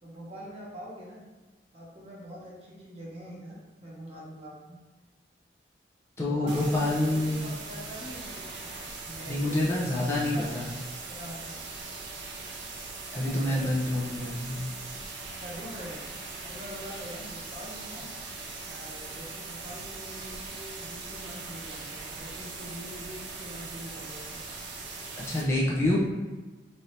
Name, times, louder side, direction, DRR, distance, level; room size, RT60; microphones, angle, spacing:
voice 1, 0.0-1.2 1.7-4.8 6.3-8.7 9.1-10.5 10.7-11.8 13.1-14.2 15.3-16.2 16.5-18.1 18.7-24.5, equal, 35° right, -5 dB, 0.9 m, -44 dB
voice 2, 6.2-7.4 9.3-10.7 13.1-14.7 25.3-26.0, left 1 dB, 15° left, -6 dB, 0.6 m, -27 dB
sound 1, 6.5-25.4, right 3 dB, 80° right, 0.8 m, -40 dB
3.3 x 2.7 x 4.1 m, 1.3 s
head